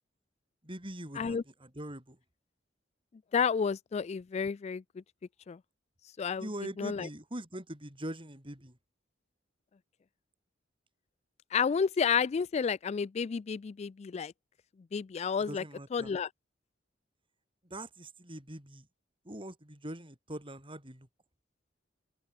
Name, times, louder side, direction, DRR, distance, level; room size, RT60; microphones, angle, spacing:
voice 1, 0.6-2.2 6.4-8.8 15.4-16.2 17.6-18.9 19.2-21.1, right 1 dB, 30° right, 7.1 m, -42 dB
voice 2, 3.3-4.8 5.5-5.6 6.2-6.4 6.8-7.1 11.5-14.3 14.9-15.6 15.9-16.3, left 6 dB, 35° left, 0.3 m, -30 dB
head